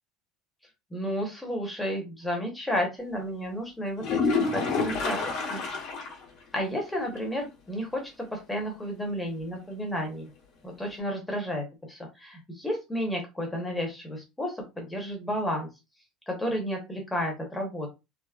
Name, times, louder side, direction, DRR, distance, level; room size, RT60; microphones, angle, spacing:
voice 1, 0.9-5.2 5.5-5.6 6.5-10.3 10.6-15.7 16.3-17.9, equal, 5° left, 1 dB, 0.8 m, -32 dB
sound 1, 4.0-6.2 6.6-6.7 7.1-7.2 11.0-11.1, left 4 dB, 55° left, 1.1 m, -28 dB
3.5 x 2.0 x 2.3 m, 0.24 s
cardioid pair, 165°, 0 cm